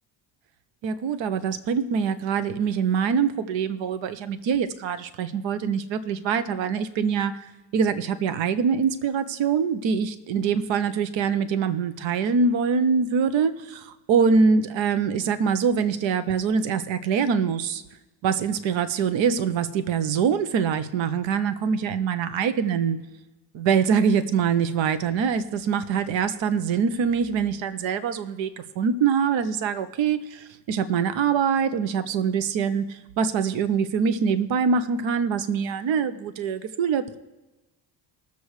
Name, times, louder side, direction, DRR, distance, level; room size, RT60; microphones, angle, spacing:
voice 1, 0.8-7.3 7.7-17.8 18.2-23.0 23.5-37.2, right 6 dB, 70° right, 13 dB, 0.9 m, -24 dB
20.5 x 7.0 x 3.2 m, 1.1 s
supercardioid pair, 75°, 46 cm